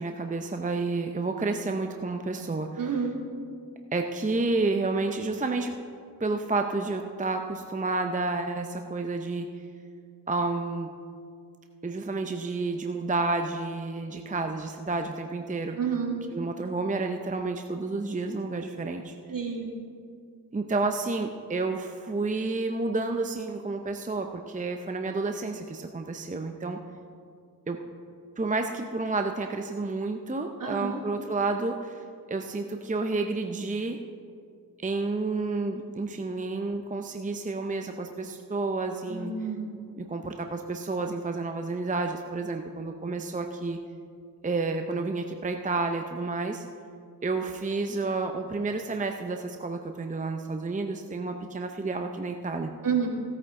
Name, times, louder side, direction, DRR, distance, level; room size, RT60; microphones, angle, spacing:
voice 1, 0.0-3.0 3.9-5.8 6.2-9.6 10.3-10.9 11.8-15.8 16.3-19.2 20.5-26.8 27.7-27.8 28.4-34.0 34.8-39.4 40.0-43.8 44.4-46.6 47.2-52.7, right 3 dB, 20° right, 5 dB, 0.6 m, -30 dB
voice 2, 2.8-3.2 15.8-16.2 19.3-19.7 30.6-31.0 39.1-39.8 52.8-53.1, right 6 dB, 55° right, 0 dB, 2.2 m, -29 dB
16.5 x 8.9 x 3.7 m, 2.3 s
cardioid pair, 60°, 38 cm